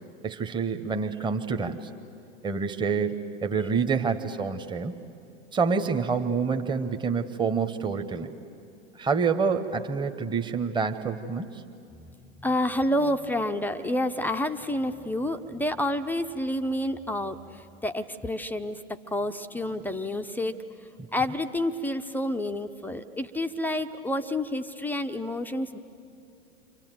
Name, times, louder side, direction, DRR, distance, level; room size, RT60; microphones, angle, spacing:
voice 1, 0.2-1.8 2.4-5.0 5.5-8.3 9.0-11.6, right 5 dB, 10° right, 7 dB, 1.2 m, -27 dB
voice 2, 12.4-18.8 19.1-20.6 21.1-25.8, left 1 dB, 5° left, 7 dB, 0.7 m, -29 dB
29.5 x 26.0 x 7.7 m, 2.5 s
figure-of-eight pair, 95°, 39 cm